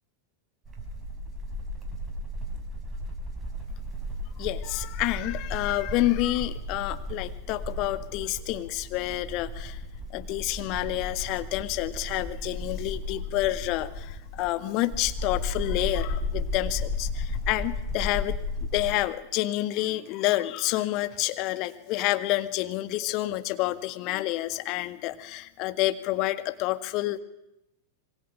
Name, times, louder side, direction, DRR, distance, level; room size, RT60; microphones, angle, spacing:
sound 1, 0.7-18.9, left 1 dB, 20° right, 6.4 m, -34 dB
voice 1, 4.4-9.8 10.1-18.4 18.7-27.2, left 17 dB, 40° left, 11 dB, 1.7 m, -29 dB
26.5 x 24.0 x 8.7 m, 0.87 s
figure-of-eight pair, 90°, 0 cm